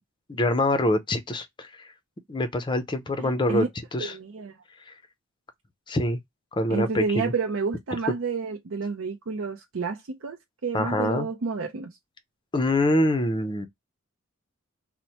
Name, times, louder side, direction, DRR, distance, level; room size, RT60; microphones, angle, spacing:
voice 1, 0.3-1.9 2.3-4.1 4.9-5.0 5.9-6.2 6.5-7.3 10.7-11.3 12.5-13.7, left 1 dB, 20° left, 0.5 m, -25 dB
voice 2, 3.2-3.7 4.0-4.6 6.7-10.4 10.6-11.9, right 4 dB, 65° right, 0.5 m, -30 dB
3.0 x 2.1 x 4.1 m
head